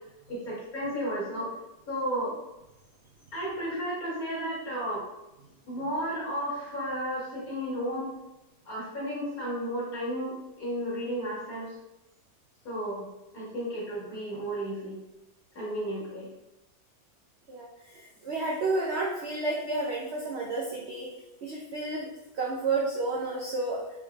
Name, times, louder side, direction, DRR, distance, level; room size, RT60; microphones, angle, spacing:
voice 1, 0.3-1.5 1.9-2.4 3.3-5.0 5.6-8.1 8.7-11.8 12.6-13.1 13.3-15.0 15.6-16.3, equal, 55° left, -6 dB, 2.1 m, -33 dB
voice 2, 17.5-21.1 21.4-23.8, right 3 dB, 85° right, -3 dB, 0.5 m, -31 dB
4.5 x 3.1 x 3.4 m, 0.95 s
omnidirectional pair, 1.9 m